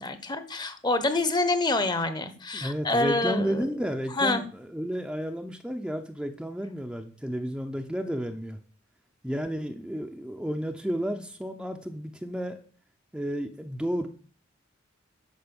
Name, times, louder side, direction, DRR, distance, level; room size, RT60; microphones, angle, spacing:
voice 1, 0.0-3.7 4.2-4.4, left 2 dB, 20° left, 11 dB, 0.9 m, -27 dB
voice 2, 2.5-8.6 9.2-12.6 13.1-14.1, equal, 5° right, 4 dB, 0.7 m, -32 dB
10.5 x 5.3 x 7.0 m, 0.42 s
head